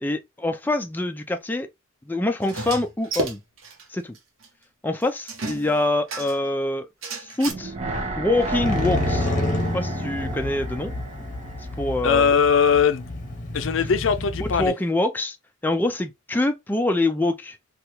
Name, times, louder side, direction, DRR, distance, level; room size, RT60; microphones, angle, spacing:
voice 1, 0.0-1.7 2.1-3.4 3.9-4.2 4.8-6.9 7.2-7.7 8.2-9.3 9.7-10.9 11.8-12.3 14.6-15.4 15.6-17.6, left 2 dB, 10° left, 0.3 m, -25 dB
sound 1, 2.4-3.8 4.1-4.2 4.4-4.5 5.3-6.5 7.0-7.5, right 3 dB, 85° right, 0.9 m, -32 dB
sound 2, 7.5-12.6 12.9-13.0, right 2 dB, 35° right, 0.8 m, -32 dB
Motorcycle, 8.6-14.7, left 2 dB, 40° left, 0.7 m, -29 dB
voice 2, 12.0-13.1 13.5-14.7, left 6 dB, 75° left, 0.4 m, -20 dB
2.8 x 2.3 x 3.0 m
head